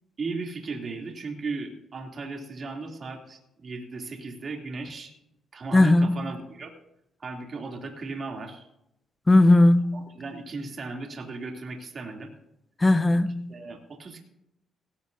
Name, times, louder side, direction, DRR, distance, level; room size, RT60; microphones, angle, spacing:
voice 1, 0.2-5.1 5.5-6.7 7.2-8.7 9.9-12.3 13.5-14.2, right 3 dB, 45° right, 2.8 m, -36 dB
voice 2, 5.7-6.2 9.3-10.0 12.8-13.5, left 2 dB, 20° left, 0.7 m, -18 dB
18.0 x 16.5 x 2.7 m
cardioid pair, 90°, 0 cm